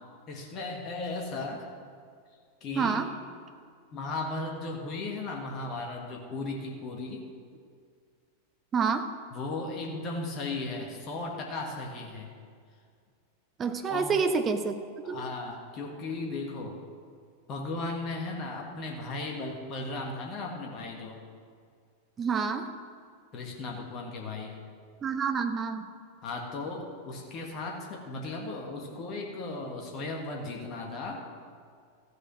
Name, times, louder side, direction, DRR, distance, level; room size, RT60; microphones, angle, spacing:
voice 1, 0.3-1.7 2.6-3.0 3.9-7.2 9.3-12.3 13.9-14.1 15.0-16.8 17.5-21.2 23.3-24.6 26.2-31.2, left 3 dB, 35° left, 1 dB, 1.6 m, -36 dB
voice 2, 2.8-3.1 8.7-9.1 13.6-14.8 15.1-15.2 22.2-22.7 25.0-25.9, right 5 dB, 25° right, 7 dB, 0.9 m, -28 dB
14.0 x 6.7 x 6.0 m, 2.1 s
figure-of-eight pair, 90°, 0 cm